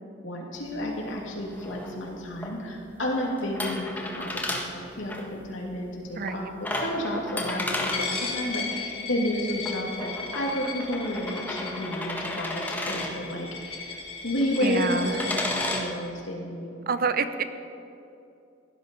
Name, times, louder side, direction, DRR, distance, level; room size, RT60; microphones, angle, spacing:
voice 1, 0.2-14.0 14.2-16.7, left 1 dB, 85° left, -1 dB, 2.8 m, -31 dB
sound 1, 0.6-15.9, left 1 dB, 10° left, 1.6 m, -35 dB
voice 2, 6.2-6.5 14.6-15.1 16.9-17.4, right 4 dB, 50° right, 11 dB, 0.7 m, -27 dB
Coin (dropping), 7.9-15.8, left 4 dB, 30° left, 1.6 m, -36 dB
17.0 x 12.0 x 5.4 m, 2.6 s
head